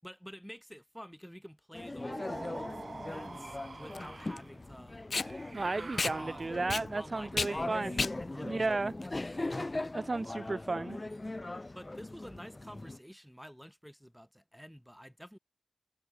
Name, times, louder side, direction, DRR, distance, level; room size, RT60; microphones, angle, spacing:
voice 1, 0.0-5.0 5.8-6.5 7.0-7.7 8.2-9.1 11.7-15.4, equal, ahead, 6.9 m, -50 dB
sound 1, 1.7-13.0, left 2 dB, 30° left, 6.8 m, -40 dB
sound 2, 2.1-4.5 5.2-6.8, right 4 dB, 60° right, 2.9 m, -47 dB
Packing tape duct tape, 2.3-9.8, left 4 dB, 70° left, 2.2 m, -37 dB
voice 2, 5.5-8.1 8.4-8.9 9.9-11.0, right 3 dB, 45° right, 3.7 m, -34 dB
wide cardioid pair, 70°, 0 cm